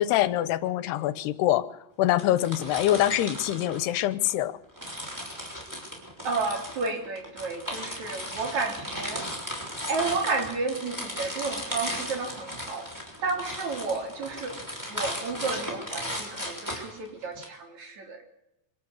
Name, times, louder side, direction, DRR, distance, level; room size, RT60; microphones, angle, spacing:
voice 1, 0.0-4.6, left 13 dB, 85° left, 16 dB, 3.0 m, -25 dB
sound 1, 2.1-4.3 4.8-17.4, equal, 5° right, 6.0 m, -36 dB
voice 2, 6.2-9.3 9.9-12.9 13.2-14.6 14.9-18.2, right 4 dB, 45° right, 4 dB, 4.4 m, -32 dB
25.0 x 13.0 x 9.9 m, 0.87 s
omnidirectional pair, 4.6 m